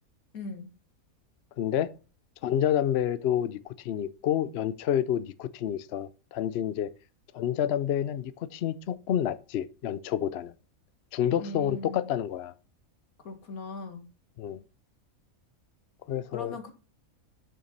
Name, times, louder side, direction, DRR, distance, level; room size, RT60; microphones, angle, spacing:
voice 1, 0.3-0.7 11.4-12.1 13.2-14.0 16.3-16.7, left 2 dB, 80° left, 2.0 m, -39 dB
voice 2, 1.6-1.9 2.4-6.9 7.3-10.5 11.1-12.5 14.4-14.6 16.1-16.5, left 10 dB, 60° left, 0.7 m, -29 dB
6.8 x 6.4 x 5.3 m
omnidirectional pair, 1.5 m